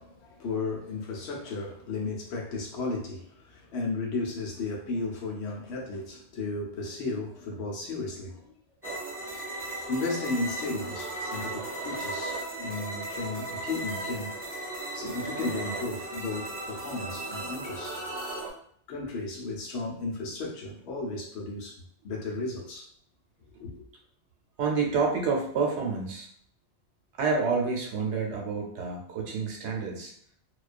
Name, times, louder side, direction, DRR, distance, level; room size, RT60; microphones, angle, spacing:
voice 1, 0.0-8.5 9.5-14.4 14.9-18.0 18.9-22.9 23.6-23.8, left 3 dB, 70° left, -2 dB, 0.9 m, -34 dB
sound 1, 8.8-18.5, right 2 dB, 20° right, 0.3 m, -36 dB
voice 2, 24.6-26.3 27.2-30.1, right 4 dB, 75° right, -1 dB, 1.0 m, -28 dB
2.3 x 2.3 x 2.4 m, 0.62 s
omnidirectional pair, 1.2 m